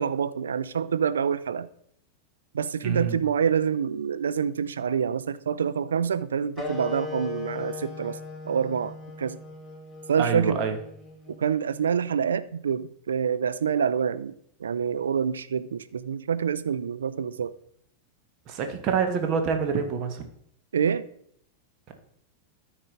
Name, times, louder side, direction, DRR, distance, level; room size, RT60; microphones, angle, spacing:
voice 1, 0.0-1.7 2.5-8.2 8.5-9.4 10.1-10.6 11.3-14.3 14.6-17.5 20.7-21.1, right 7 dB, 70° right, 0.4 m, -26 dB
voice 2, 2.8-3.2 10.2-10.8 18.5-20.2, right 6 dB, 40° right, 1.3 m, -26 dB
sound 1, 6.6-11.7, left 3 dB, ahead, 1.6 m, -38 dB
13.0 x 4.8 x 3.8 m
figure-of-eight pair, 90°, 0 cm